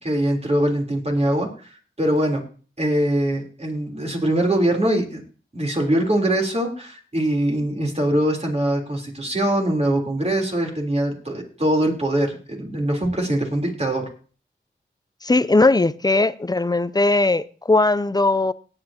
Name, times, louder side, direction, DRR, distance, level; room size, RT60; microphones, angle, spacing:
voice 1, 0.0-2.4 2.8-5.2 5.5-14.1, right 1 dB, 30° right, 3.7 m, -22 dB
voice 2, 15.2-18.5, left 2 dB, 20° left, 0.6 m, -19 dB
18.5 x 9.0 x 2.9 m
cardioid pair, 40°, 20 cm